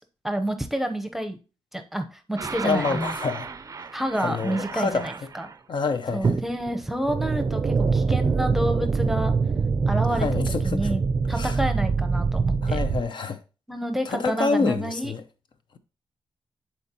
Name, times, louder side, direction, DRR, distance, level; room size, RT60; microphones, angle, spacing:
voice 1, 0.2-1.4 1.7-3.1 3.9-5.5 6.1-9.3 9.9-10.3 10.6-11.0 11.3-12.8 13.7-15.1, right 1 dB, ahead, 0.8 m, -29 dB
sound 1, 2.4-5.5 6.2-13.0, right 4 dB, 35° right, 0.5 m, -25 dB
voice 2, 2.6-3.5 4.2-5.1 5.7-6.4 10.1-10.9 11.3-11.6 12.6-13.4 14.1-15.2, left 4 dB, 50° left, 0.6 m, -27 dB
10.5 x 4.3 x 3.0 m
wide cardioid pair, 120°, 10 cm